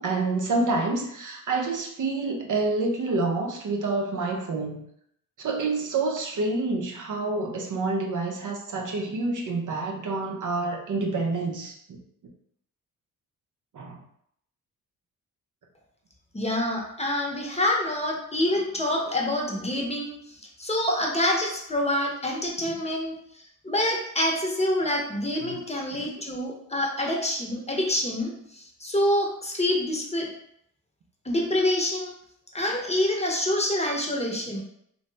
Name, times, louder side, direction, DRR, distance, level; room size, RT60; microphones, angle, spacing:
voice 1, 0.0-4.8 5.4-12.0 13.7-14.0 25.4-25.6 25.9-26.0, right 3 dB, 55° right, 1 dB, 0.7 m, -28 dB
voice 2, 16.3-30.3 31.2-32.1 32.5-34.6, left 1 dB, 20° left, -1 dB, 0.8 m, -27 dB
2.8 x 2.2 x 3.3 m, 0.71 s
supercardioid pair, 55°, 36 cm